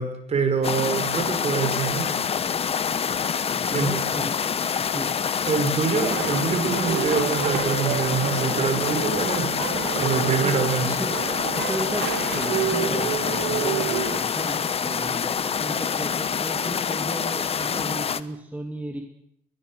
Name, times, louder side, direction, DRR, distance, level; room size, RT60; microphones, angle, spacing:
voice 1, 0.0-2.4 3.7-3.9 5.4-9.5 9.9-10.9, right 5 dB, 40° right, 7 dB, 5.9 m, -25 dB
sound 1, 0.6-18.2, left 7 dB, 35° left, 1.1 m, -26 dB
voice 2, 3.5-4.4 4.7-5.1 10.4-11.2 11.5-19.0, right 1 dB, 10° right, 3 dB, 2.4 m, -35 dB
sound 2, 6.0-14.2, right 10 dB, 85° right, 2.8 m, -29 dB
23.0 x 20.5 x 8.1 m, 0.74 s
cardioid pair, 110°, 17 cm